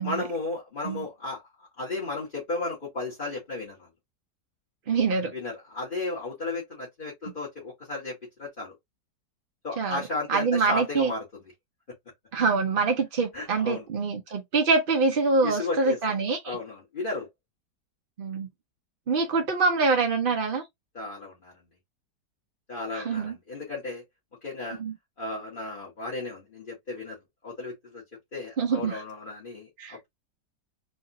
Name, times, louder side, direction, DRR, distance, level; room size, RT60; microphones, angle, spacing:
voice 1, 0.0-1.4 1.8-3.9 5.3-8.1 8.4-8.7 9.6-11.2 13.3-13.9 15.4-16.0 16.4-17.3 20.9-21.5 22.7-24.0 24.4-24.8 25.2-27.2 27.4-28.0 28.3-30.1, left 2 dB, 30° left, 1.8 m, -34 dB
voice 2, 4.9-5.3 9.8-10.0 10.3-11.1 12.3-16.6 18.2-18.5 19.1-20.6 22.9-23.3 24.8-24.9 28.6-29.0 29.8-30.0, right 4 dB, 55° right, 0.6 m, -25 dB
4.3 x 2.9 x 2.6 m
omnidirectional pair, 1.9 m